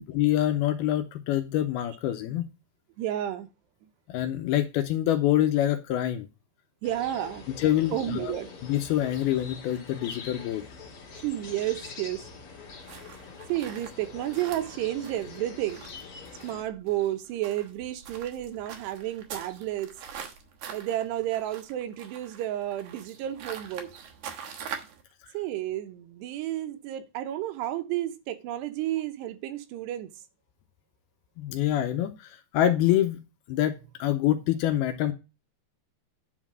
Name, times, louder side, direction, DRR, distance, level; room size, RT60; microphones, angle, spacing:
voice 1, 0.0-2.5 4.1-6.3 7.6-8.3 8.6-10.6 31.4-33.2 33.5-35.1, left 12 dB, 80° left, 2.4 m, -26 dB
voice 2, 3.0-3.5 3.8-3.9 6.8-7.4 7.9-8.5 11.1-12.3 13.5-16.0 16.4-20.0 20.7-23.9 25.3-30.1, right 13 dB, 80° right, 3.0 m, -31 dB
sound 1, 6.8-16.6, left 5 dB, 45° left, 2.1 m, -44 dB
sound 2, 12.9-25.0, right 7 dB, 65° right, 2.0 m, -44 dB
10.0 x 4.0 x 6.0 m
omnidirectional pair, 4.8 m